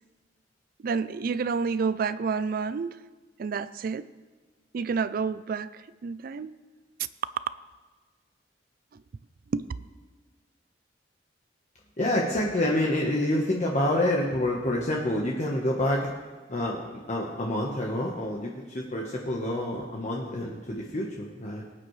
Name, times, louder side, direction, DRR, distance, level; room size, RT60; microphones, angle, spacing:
voice 1, 0.8-3.0 3.4-4.1 4.7-6.5 8.9-9.0 9.5-9.7, right 5 dB, 50° right, 15 dB, 0.4 m, -29 dB
voice 2, 12.0-16.1 16.5-21.6, left 1 dB, 40° left, -2 dB, 1.2 m, -27 dB
20.0 x 9.3 x 3.2 m, 1.4 s
head